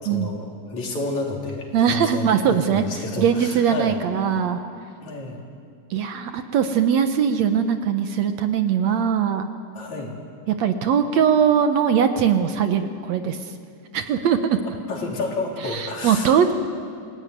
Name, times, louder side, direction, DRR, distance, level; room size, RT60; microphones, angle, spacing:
voice 1, 0.0-4.0 5.0-5.4 9.8-10.1 14.9-16.3, left 3 dB, 60° left, -1 dB, 4.8 m, -30 dB
voice 2, 1.7-4.6 5.9-9.5 10.5-13.4 13.9-14.6 15.6-16.5, right 7 dB, 65° right, 7 dB, 2.1 m, -21 dB
29.5 x 19.0 x 9.5 m, 2.3 s
omnidirectional pair, 3.7 m